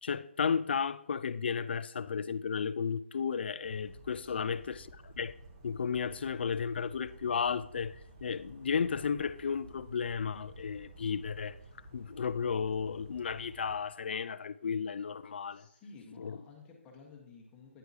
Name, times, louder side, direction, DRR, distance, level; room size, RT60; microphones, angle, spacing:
voice 1, 0.0-5.3 5.6-7.9 8.2-11.6 11.9-15.6 16.2-16.4, left 6 dB, 55° left, 0.4 m, -33 dB
Bird vocalization bird call bird song, 3.6-13.7, right 1 dB, 30° right, 1.2 m, -53 dB
voice 2, 4.2-4.6 15.5-17.8, left 4 dB, 15° left, 1.4 m, -53 dB
9.6 x 7.8 x 2.9 m
figure-of-eight pair, 150°, 7 cm